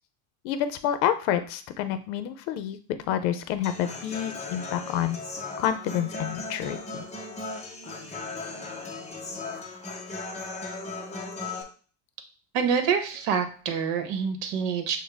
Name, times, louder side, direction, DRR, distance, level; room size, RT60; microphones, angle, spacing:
voice 1, 0.4-5.2 5.6-6.8, left 10 dB, 85° left, 10 dB, 0.7 m, -28 dB
Human voice / Acoustic guitar, 3.6-11.6, left 3 dB, 15° left, 0.6 m, -37 dB
voice 2, 12.5-15.0, right 6 dB, 60° right, 7 dB, 1.0 m, -26 dB
6.3 x 2.2 x 3.4 m, 0.41 s
cardioid pair, 130°, 48 cm